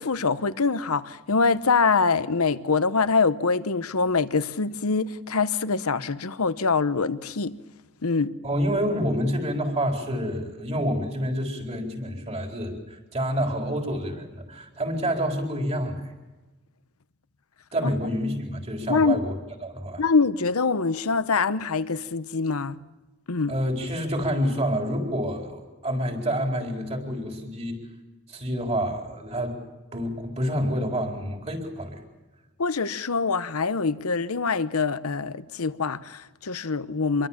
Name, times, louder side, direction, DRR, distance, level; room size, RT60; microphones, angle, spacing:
voice 1, 0.0-7.6 8.0-8.3 17.8-17.9 18.9-19.2 20.0-22.8 23.3-23.5 32.6-37.3, left 4 dB, 75° left, 0.9 m, -24 dB
voice 2, 8.4-16.0 17.7-19.3 19.6-20.0 23.5-27.8 28.3-29.6 29.9-32.0, equal, 30° right, 4.3 m, -28 dB
26.5 x 23.0 x 7.4 m
head